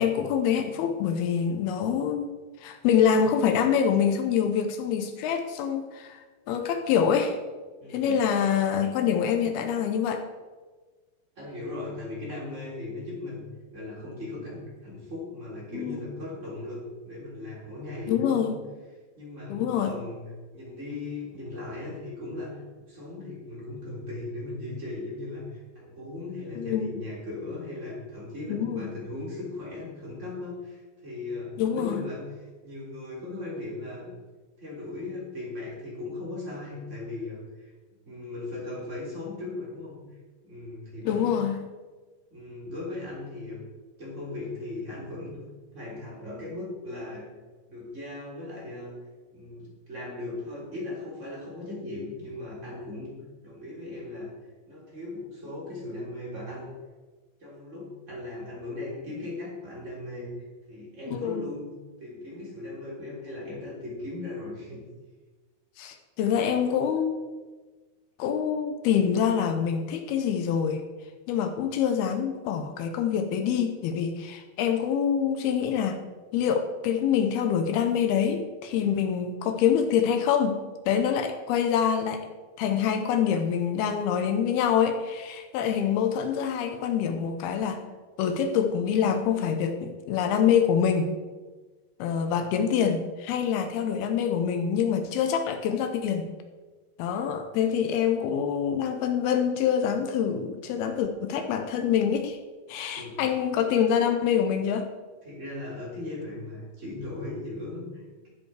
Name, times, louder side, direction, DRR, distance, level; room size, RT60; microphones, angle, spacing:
voice 1, 0.0-2.3 2.6-7.4 7.9-10.2 15.7-16.0 18.1-18.5 19.5-19.9 26.6-27.0 28.5-28.9 31.6-32.0 41.1-41.6 61.1-61.5 65.8-67.2 68.2-70.8 71.3-76.0 76.3-80.6 80.9-82.3 82.6-87.8 88.2-91.1 92.0-96.3 97.0-102.4 102.7-104.9, left 8 dB, 75° left, 7 dB, 2.5 m, -25 dB
voice 2, 7.8-8.2 11.3-13.5 13.7-18.5 19.2-22.6 22.9-34.1 34.6-37.7 38.0-40.0 40.4-41.2 42.3-43.6 44.0-45.4 45.7-47.3 47.7-48.9 49.3-54.3 54.7-56.7 57.4-61.7 62.0-64.8 92.3-92.5 103.0-103.3 105.2-108.3, left 2 dB, 20° right, -5 dB, 3.4 m, -38 dB
13.0 x 7.5 x 4.8 m, 1.3 s
omnidirectional pair, 4.8 m